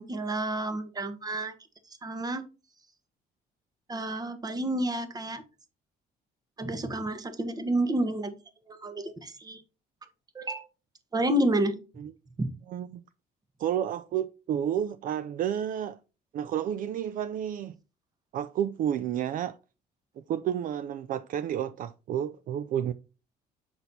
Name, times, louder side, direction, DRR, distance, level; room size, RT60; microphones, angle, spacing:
voice 1, 0.0-1.5 2.0-2.4 3.9-5.4 6.6-8.4 8.7-9.6 10.3-10.7 11.1-11.8 12.4-12.5, right 1 dB, 25° right, 1.1 m, -29 dB
voice 2, 12.7-13.0 13.6-16.0 16.3-17.7 18.3-19.6 20.3-22.9, right 10 dB, 55° right, 0.4 m, -31 dB
6.9 x 4.0 x 4.1 m
cardioid pair, 110°, 17 cm